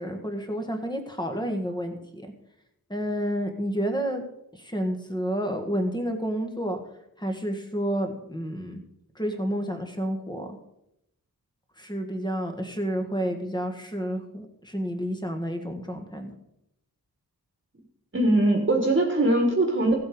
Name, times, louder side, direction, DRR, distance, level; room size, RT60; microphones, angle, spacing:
voice 1, 0.0-2.0 2.9-4.3 4.6-6.8 7.2-8.8 9.2-10.5 11.8-16.3, equal, 10° left, 5 dB, 1.8 m, -30 dB
voice 2, 18.1-19.9, right 1 dB, 35° right, 2 dB, 1.7 m, -21 dB
16.0 x 7.9 x 5.2 m, 0.81 s
wide cardioid pair, 125°, 37 cm